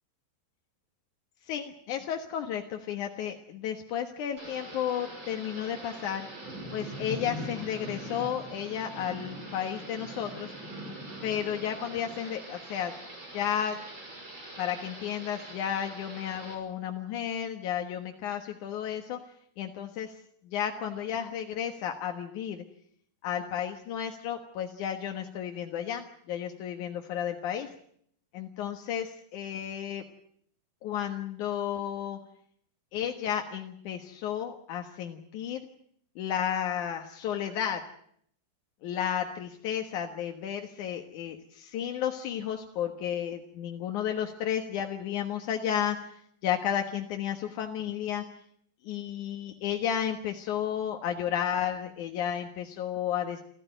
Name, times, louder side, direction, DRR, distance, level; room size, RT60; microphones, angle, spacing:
voice 1, 1.5-6.3 6.7-10.5 11.2-12.9 13.3-13.8 14.6-19.2 19.6-20.2 20.4-22.6 23.2-27.7 28.3-30.0 30.8-32.2 32.9-35.7 36.2-37.8 38.8-48.2 48.8-53.4, left 9 dB, 60° left, 4 dB, 2.1 m, -32 dB
Thunder / Rain, 4.4-16.5, right 1 dB, 25° right, 6.0 m, -42 dB
29.0 x 14.5 x 9.0 m, 0.68 s
omnidirectional pair, 5.1 m